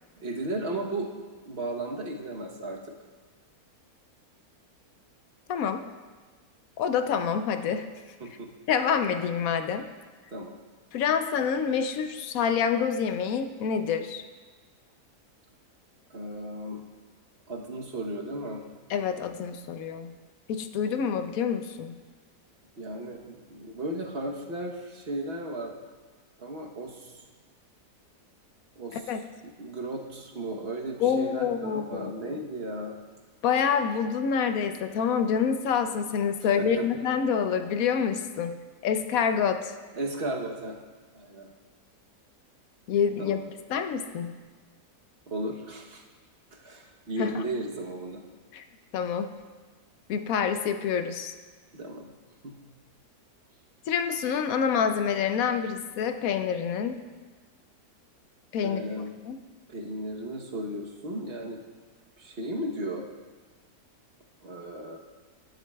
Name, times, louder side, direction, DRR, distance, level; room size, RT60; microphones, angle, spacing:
voice 1, 0.2-1.1 1.4-2.8 8.2-8.5 10.3-10.5 16.1-16.8 17.5-18.6 22.8-25.7 26.4-27.2 28.8-29.0 29.6-33.0 36.4-36.8 39.9-40.8 41.1-41.5 43.2-43.4 45.3-46.0 46.6-48.2 51.7-52.1 52.4-52.6 58.6-59.1 59.7-61.6 62.2-63.1 64.4-65.0, right 1 dB, 45° right, 0 dB, 1.1 m, -35 dB
voice 2, 5.5-5.9 6.8-7.9 8.7-9.9 10.9-14.2 18.9-20.1 20.5-22.0 28.9-29.2 31.0-32.4 33.4-38.6 38.8-39.7 42.9-43.4 43.7-44.3 47.2-47.3 48.5-48.6 48.9-49.4 50.1-51.3 53.9-57.0 58.5-58.8 59.2-59.4, left 7 dB, 70° left, 8 dB, 0.9 m, -27 dB
13.0 x 11.0 x 2.3 m, 1.4 s
omnidirectional pair, 1.7 m